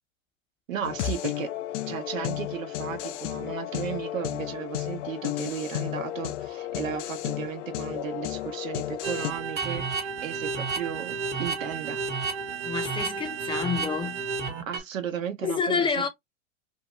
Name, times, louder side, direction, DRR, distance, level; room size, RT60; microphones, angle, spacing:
voice 1, 0.7-1.5 1.9-12.0 14.7-15.9, right 9 dB, 80° right, 0.9 m, -35 dB
sound 1, 0.8-9.3, left 13 dB, 65° left, 0.6 m, -33 dB
sound 2, 9.0-14.8, right 4 dB, 30° right, 1.1 m, -31 dB
voice 2, 12.6-14.2 15.4-16.1, left 5 dB, 15° left, 0.6 m, -28 dB
2.8 x 2.3 x 2.9 m
hypercardioid pair, 105°, 39 cm